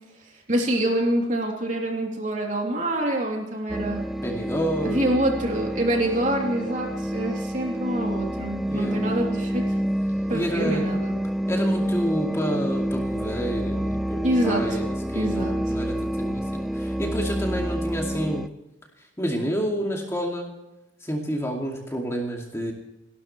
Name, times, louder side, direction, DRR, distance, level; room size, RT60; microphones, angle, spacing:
voice 1, 0.5-4.1 4.8-9.7 10.3-11.2 14.2-14.8 15.1-15.5, right 1 dB, 40° right, 0 dB, 3.4 m, -26 dB
sound 1, 3.7-18.5, equal, ahead, 0.4 m, -28 dB
voice 2, 4.2-5.2 8.7-9.0 10.3-10.9 11.5-14.8 15.1-16.4 16.7-18.4 19.2-20.5 21.0-22.7, equal, 15° left, 0 dB, 2.5 m, -29 dB
29.5 x 12.5 x 3.3 m, 0.94 s
head